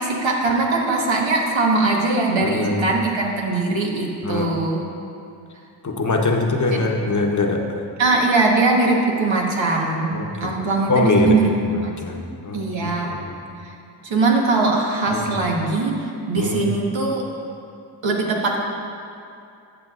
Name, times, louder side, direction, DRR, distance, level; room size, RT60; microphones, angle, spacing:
voice 1, 0.0-4.8 8.0-11.4 11.7-12.3 12.5-13.1 14.0-16.0 16.3-17.2 18.0-18.6, right 3 dB, 80° right, -1 dB, 1.3 m, -21 dB
voice 2, 2.4-2.9 4.2-4.5 5.8-7.8 10.1-10.5 10.9-12.2 12.4-13.3 15.1-15.4 16.4-16.7, left 3 dB, 40° left, 2 dB, 0.9 m, -23 dB
12.0 x 7.3 x 2.4 m, 2.6 s
cardioid pair, 55°, 45 cm